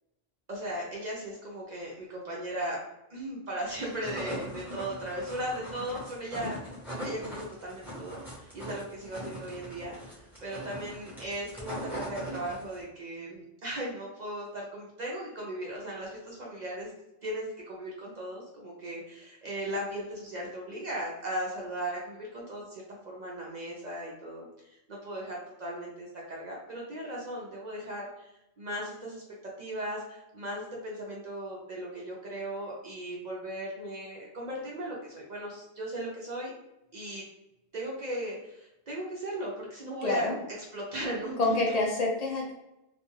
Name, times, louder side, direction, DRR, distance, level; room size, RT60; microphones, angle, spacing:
voice 1, 0.5-2.8 3.1-6.6 7.0-10.1 10.4-16.9 17.2-28.3 28.6-29.2 29.6-36.5 36.9-37.2 37.7-40.3 40.7-41.8, right 1 dB, 55° right, -3 dB, 0.5 m, -37 dB
sound 1, 3.7-12.8, equal, ahead, 0.8 m, -40 dB
voice 2, 40.0-40.3 41.4-42.5, left 2 dB, 80° left, -1 dB, 0.3 m, -27 dB
2.4 x 2.2 x 3.1 m, 0.88 s
omnidirectional pair, 1.3 m